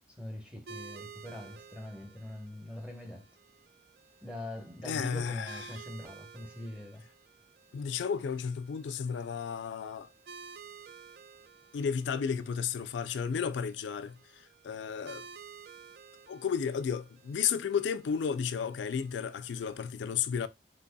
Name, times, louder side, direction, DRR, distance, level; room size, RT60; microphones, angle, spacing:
voice 1, 0.1-3.3 4.2-7.0 7.8-7.9, left 1 dB, 5° right, 0.9 m, -43 dB
sound 1, 0.7-19.8, right 5 dB, 60° right, 0.3 m, -53 dB
voice 2, 4.8-5.7 7.7-10.1 11.7-15.3 16.3-20.5, left 7 dB, 85° left, 0.4 m, -33 dB
4.0 x 3.3 x 2.2 m
head